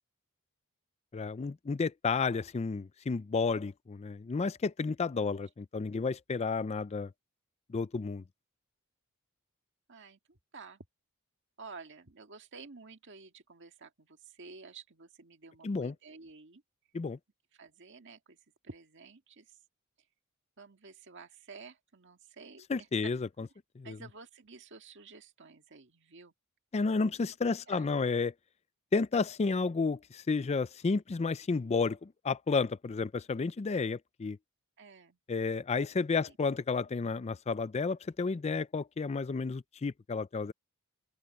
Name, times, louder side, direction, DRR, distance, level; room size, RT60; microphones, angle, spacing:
voice 1, 1.1-7.1 7.7-8.2 15.6-15.9 16.9-17.2 22.7-23.5 23.8-24.0 26.7-28.3 28.9-34.4 35.3-40.5, left 4 dB, 30° left, 0.4 m, -31 dB
voice 2, 9.9-10.8 11.6-16.6 17.5-18.4 18.6-19.6 20.6-23.1 23.4-23.5 23.8-26.3 27.7-27.9 34.8-35.2 36.3-36.4, right 4 dB, 55° right, 1.9 m, -51 dB
open air
head